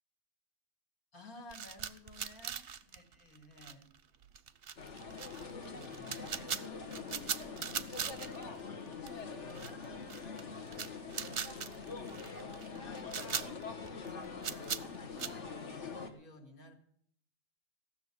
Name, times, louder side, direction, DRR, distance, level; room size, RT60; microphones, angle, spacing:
voice 1, 1.1-3.9 5.4-8.5 9.0-16.7, left 2 dB, 70° left, 2 dB, 2.5 m, -56 dB
sound 1, 1.5-4.0 4.2-8.6 8.9-9.1 9.5-10.4 10.7-15.3, right 8 dB, 50° right, 0.8 m, -40 dB
sound 2, 4.8-16.1, left 5 dB, 50° left, 1.6 m, -44 dB
16.5 x 6.7 x 9.8 m, 0.66 s
omnidirectional pair, 1.6 m